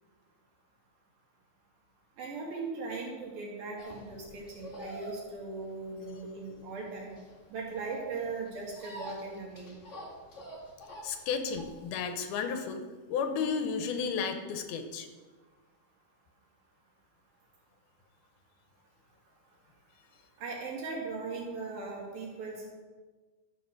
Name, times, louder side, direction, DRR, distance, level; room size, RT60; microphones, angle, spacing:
voice 1, 2.2-7.1 7.5-9.7 20.4-22.7, right 4 dB, 70° right, -3 dB, 3.9 m, -39 dB
sound 1, 3.8-11.9, right 1 dB, 45° left, 0.9 m, -47 dB
voice 2, 11.0-15.1, left 6 dB, 80° left, 6 dB, 2.8 m, -33 dB
13.5 x 5.3 x 6.5 m, 1.3 s
omnidirectional pair, 4.4 m